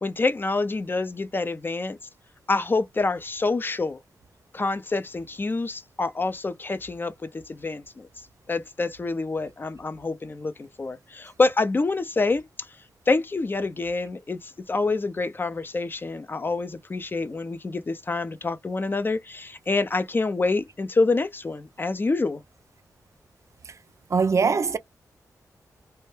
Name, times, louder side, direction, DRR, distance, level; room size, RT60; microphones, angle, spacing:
voice 1, 0.0-2.0 2.5-4.0 4.5-8.1 8.5-12.4 13.1-22.4, left 3 dB, 30° left, 0.4 m, -27 dB
voice 2, 24.1-24.8, right 5 dB, 50° right, 0.4 m, -21 dB
2.2 x 2.0 x 3.1 m
cardioid pair, 70°, 7 cm